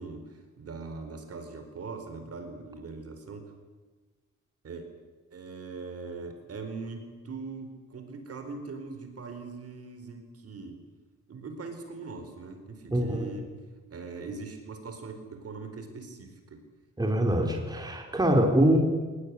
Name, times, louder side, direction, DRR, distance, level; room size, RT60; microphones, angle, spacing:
voice 1, 0.0-3.4 4.6-4.9 5.3-10.8 11.3-13.5 13.9-16.6, right 4 dB, 55° right, 6 dB, 4.5 m, -41 dB
voice 2, 12.9-13.3 17.0-18.8, right 1 dB, 15° right, 2 dB, 3.6 m, -24 dB
24.0 x 19.5 x 9.9 m, 1.3 s
wide cardioid pair, 165°, 29 cm